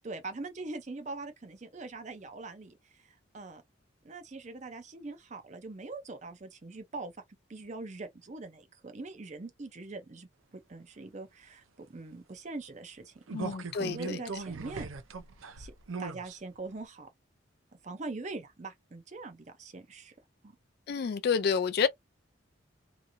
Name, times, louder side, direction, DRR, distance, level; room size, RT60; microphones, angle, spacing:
voice 1, 0.0-3.6 4.0-7.1 7.5-13.2 13.8-14.9 15.6-15.7 16.0-17.1 17.8-20.1 20.4-20.6, right 3 dB, 35° right, 0.5 m, -42 dB
voice 2, 13.3-14.2 20.9-21.9, left 6 dB, 50° left, 0.3 m, -29 dB
sound 1, 13.3-16.4 16.8-16.9, right 4 dB, 80° right, 0.5 m, -39 dB
2.9 x 2.5 x 2.6 m
head